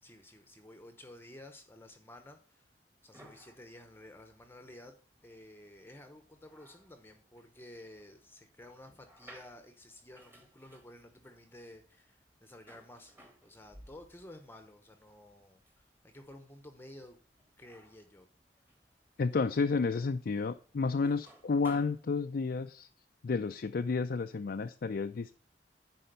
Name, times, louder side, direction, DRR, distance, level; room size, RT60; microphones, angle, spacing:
voice 1, 0.0-2.7 3.0-5.0 5.2-13.1 13.4-17.2 17.6-18.3, left 1 dB, 15° left, 7 dB, 0.9 m, -53 dB
sound 1, 3.0-22.3, right 1 dB, 15° right, 1.5 m, -60 dB
voice 2, 19.2-22.9 23.2-25.3, left 4 dB, 55° left, 7 dB, 0.4 m, -31 dB
10.0 x 4.3 x 6.7 m, 0.39 s
head